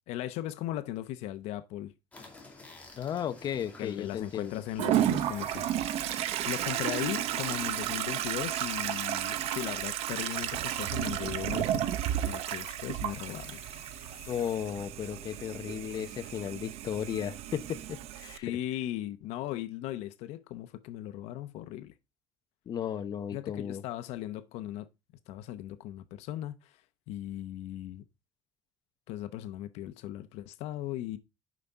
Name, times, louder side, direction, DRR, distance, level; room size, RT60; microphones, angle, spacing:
voice 1, 0.1-1.9 3.8-6.1 6.4-13.6 18.4-21.9 23.3-24.9 25.3-26.8 27.1-28.0 29.1-31.2, left 13 dB, 80° left, 0.8 m, -38 dB
sound 1, 2.1-8.3, left 2 dB, 15° left, 2.4 m, -52 dB
voice 2, 3.0-4.6 14.3-18.5 22.7-23.8, left 9 dB, 40° left, 0.8 m, -35 dB
Toilet flush, 4.8-18.4, right 11 dB, 70° right, 0.8 m, -33 dB
sound 2, 5.1-14.7, left 10 dB, 60° left, 1.6 m, -55 dB
9.2 x 5.7 x 3.5 m
cardioid pair, 145°, 11 cm